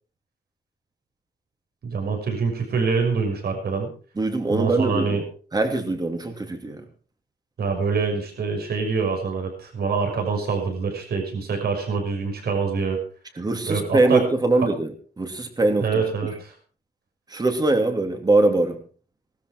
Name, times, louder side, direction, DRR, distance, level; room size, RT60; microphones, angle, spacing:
voice 1, 1.8-3.9 4.5-5.2 7.6-13.0 13.7-14.3 14.5-14.7 15.8-16.5, right 5 dB, 65° right, 4 dB, 6.1 m, -25 dB
voice 2, 4.2-5.2 5.5-6.8 13.4-14.9 15.2-15.9 17.3-18.8, right 2 dB, 20° right, 6 dB, 2.9 m, -22 dB
19.0 x 13.5 x 4.7 m, 0.40 s
wide cardioid pair, 145°, 18 cm